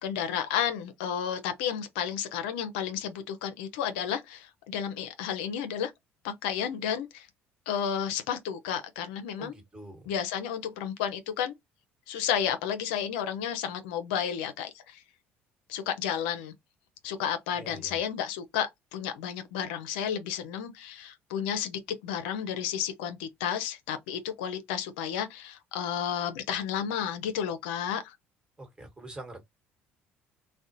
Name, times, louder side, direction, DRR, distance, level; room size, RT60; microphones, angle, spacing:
voice 1, 0.0-5.9 6.2-7.3 7.7-9.5 10.1-11.5 12.1-15.0 15.7-16.5 17.0-28.1, left 8 dB, 80° left, 0.5 m, -32 dB
voice 2, 9.4-10.1 17.5-17.9 28.6-29.5, right 1 dB, 15° right, 1.3 m, -45 dB
2.4 x 2.1 x 2.6 m
hypercardioid pair, 70°, 5 cm